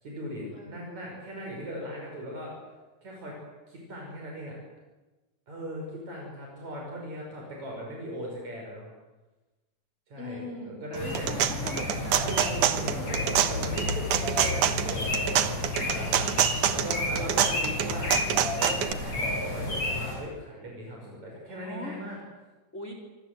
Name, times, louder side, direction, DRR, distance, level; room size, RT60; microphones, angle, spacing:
voice 1, 0.0-2.5 3.0-3.3 3.7-4.6 5.5-8.9 10.1-11.3 12.1-18.3 18.5-22.2, equal, 65° right, -1 dB, 7.2 m, -39 dB
voice 2, 0.5-1.0 10.2-12.4 12.9-13.3 21.4-22.0 22.7-22.9, left 1 dB, 20° left, 3 dB, 4.3 m, -40 dB
sound 1, 10.9-20.1, left 2 dB, 60° left, 9.6 m, -31 dB
sound 2, 10.9-18.9, right 10 dB, 80° right, 2.8 m, -26 dB
26.5 x 25.5 x 8.0 m, 1.2 s
omnidirectional pair, 3.5 m